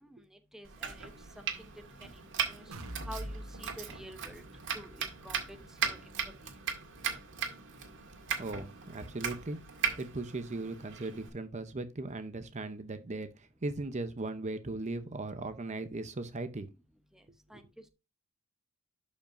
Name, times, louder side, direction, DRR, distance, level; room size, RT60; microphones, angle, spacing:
voice 1, 0.0-1.7 2.0-2.7 3.0-4.5 4.7-6.2 6.4-6.5 17.1-17.9, equal, ahead, 0.8 m, -50 dB
Domestic sounds home sounds, 0.6-11.3, right 7 dB, 55° right, 1.9 m, -38 dB
sound 1, 2.7-10.5 10.9-11.0 11.4-11.5, equal, 85° right, 1.4 m, -49 dB
voice 2, 8.4-9.6 10.0-16.7 17.5-17.6, right 2 dB, 30° right, 0.7 m, -38 dB
12.0 x 5.3 x 2.5 m
head